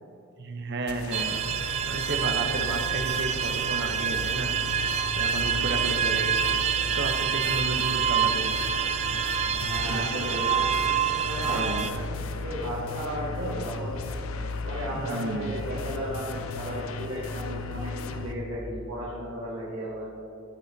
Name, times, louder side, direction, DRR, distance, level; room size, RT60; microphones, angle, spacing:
voice 1, 0.4-1.4 1.9-4.6 5.1-6.4 6.9-8.6 9.8-10.1 11.4-11.9 14.9-15.5, right 2 dB, 55° right, 5 dB, 0.8 m, -32 dB
sound 1, 0.9-18.3, left 3 dB, 75° left, 0.6 m, -36 dB
sound 2, 1.1-11.9, right 8 dB, 30° right, 0.3 m, -27 dB
voice 2, 9.6-10.7 11.0-14.0 14.6-20.1, equal, 80° right, -7 dB, 1.6 m, -35 dB
13.5 x 7.2 x 2.8 m, 3.0 s
head